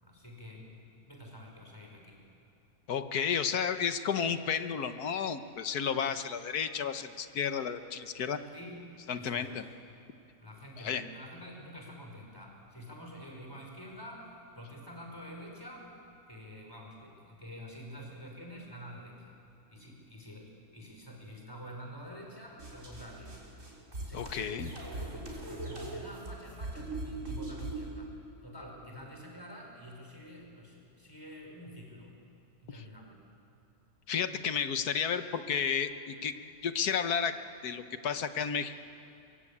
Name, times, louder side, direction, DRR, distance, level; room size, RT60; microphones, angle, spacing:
voice 1, 0.0-2.2 8.5-8.8 9.1-9.7 10.4-14.3 14.5-16.0 16.3-19.4 19.7-23.4 24.0-28.1 28.4-32.2 32.6-33.2, equal, 15° left, 0 dB, 5.2 m, -48 dB
voice 2, 2.9-8.4 9.1-9.6 10.8-11.0 24.1-24.7 32.7-32.8 34.1-36.3 36.6-37.4 37.6-38.8, left 7 dB, 80° left, 9 dB, 1.6 m, -32 dB
sound 1, 22.6-27.9, right 2 dB, 55° right, 4.5 m, -40 dB
24.0 x 22.5 x 8.7 m, 2.6 s
omnidirectional pair, 1.6 m